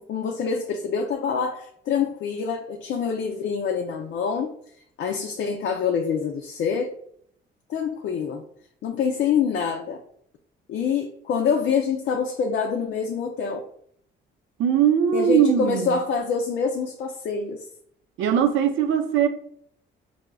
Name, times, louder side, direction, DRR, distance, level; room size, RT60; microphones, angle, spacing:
voice 1, 0.0-4.5 5.0-6.9 7.7-8.4 8.8-10.0 10.7-13.6 15.1-17.6, left 6 dB, 65° left, 0.4 m, -26 dB
voice 2, 14.6-16.0 18.2-19.3, right 8 dB, 75° right, 0.5 m, -20 dB
4.6 x 2.0 x 2.2 m
cardioid pair, 90°, 20 cm